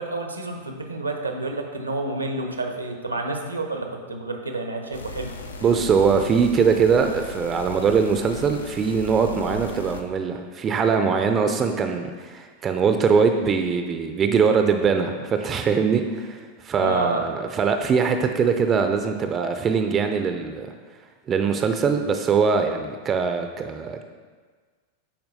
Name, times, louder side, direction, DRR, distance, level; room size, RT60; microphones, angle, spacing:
voice 1, 0.0-5.3 16.8-17.2, right 2 dB, 80° right, 4 dB, 0.7 m, -29 dB
sound 1, 4.9-10.0, left 3 dB, 70° left, 0.5 m, -37 dB
voice 2, 5.6-20.7 21.3-24.0, right 5 dB, 25° right, 6 dB, 0.4 m, -22 dB
10.0 x 4.4 x 2.7 m, 1.5 s
figure-of-eight pair, 90°, 0 cm